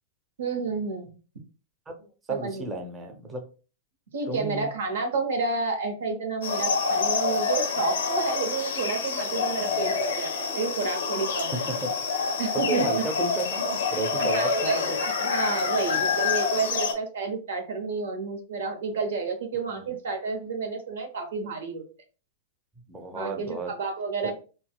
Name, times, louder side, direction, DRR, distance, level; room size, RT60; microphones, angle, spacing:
voice 1, 0.4-1.1 2.3-2.6 4.1-11.6 12.4-12.9 14.2-21.8 23.1-24.3, right 4 dB, 85° right, 3 dB, 0.8 m, -30 dB
voice 2, 1.9-3.4 4.3-4.7 9.6-10.0 11.5-12.0 12.5-14.8 19.8-19.9 22.9-23.7 24.2-24.3, right 3 dB, 20° right, 3 dB, 0.7 m, -33 dB
sound 1, 6.4-16.9, left 5 dB, 90° left, 0.7 m, -27 dB
3.9 x 2.0 x 2.2 m, 0.36 s
hypercardioid pair, 120°, 0 cm